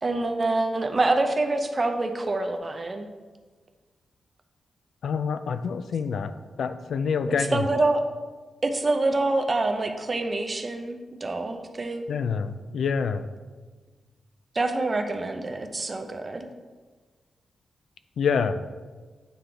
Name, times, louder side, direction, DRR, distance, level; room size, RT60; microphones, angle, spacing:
voice 1, 0.0-3.1 7.5-8.0 8.6-12.1 14.5-16.5, right 2 dB, 25° right, 5 dB, 0.5 m, -26 dB
voice 2, 5.0-6.3 6.6-7.6 12.1-13.3 18.2-18.6, left 6 dB, 70° left, 11 dB, 0.3 m, -26 dB
9.0 x 3.8 x 3.3 m, 1.4 s
wide cardioid pair, 170°, 0 cm